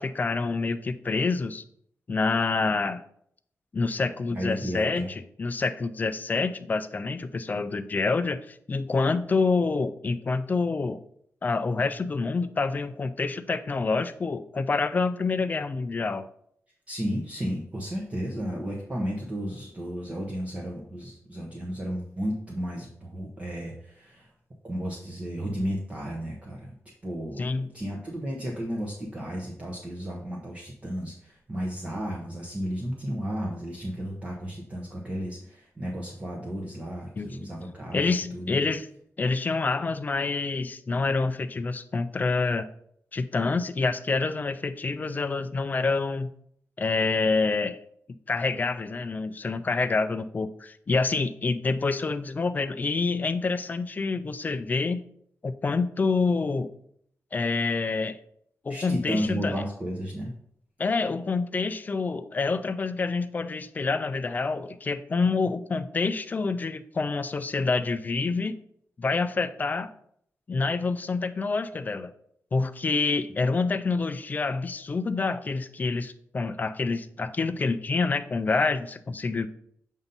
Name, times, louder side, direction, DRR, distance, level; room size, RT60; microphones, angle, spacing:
voice 1, 0.0-1.6 2.1-3.0 3.7-5.1 5.4-11.0 11.4-16.3 27.4-27.7 37.2-37.3 37.9-38.9 39.2-42.7 43.1-46.3 46.8-47.8 48.3-55.0 55.4-56.7 57.3-58.2 58.6-59.5 60.8-68.6 69.0-69.9 70.5-72.1 72.5-79.5, left 4 dB, 35° left, 11 dB, 0.4 m, -27 dB
voice 2, 4.3-5.1 16.9-24.3 24.6-26.7 27.0-27.4 27.7-38.6 58.7-60.3, equal, 25° right, -2 dB, 0.8 m, -33 dB
7.0 x 2.7 x 5.3 m, 0.69 s
wide cardioid pair, 140°, 5 cm